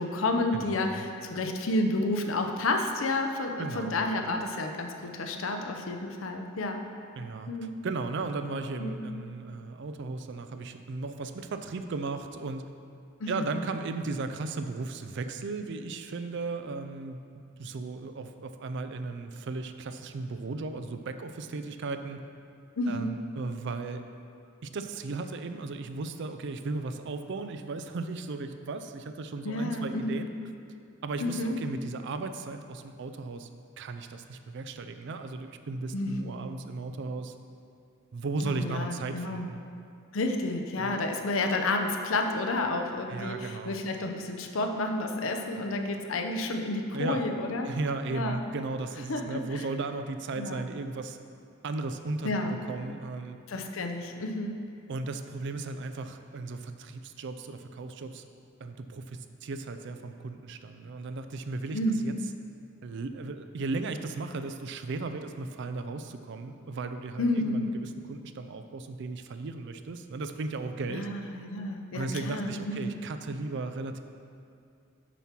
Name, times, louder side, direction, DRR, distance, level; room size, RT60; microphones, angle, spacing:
voice 1, 0.0-6.8 7.5-7.7 8.8-9.0 13.2-13.5 22.8-23.2 29.4-30.2 31.2-31.6 35.9-36.4 38.4-39.5 40.1-47.7 48.1-48.4 49.1-49.4 50.4-50.7 52.2-52.6 53.5-54.6 61.7-62.2 67.2-67.7 70.9-72.9, left 2 dB, 80° left, 4 dB, 0.6 m, -30 dB
voice 2, 0.5-1.1 3.6-4.1 7.2-12.6 13.3-17.2 17.6-22.2 22.9-24.0 24.6-30.3 31.0-33.5 33.8-37.3 38.1-39.6 40.8-40.9 43.1-43.8 46.9-47.2 47.6-51.2 51.6-52.3 52.7-53.4 54.9-58.2 58.6-62.1 62.8-71.1 71.9-74.0, right 3 dB, 60° right, 8 dB, 0.4 m, -36 dB
7.0 x 4.4 x 5.9 m, 2.4 s
head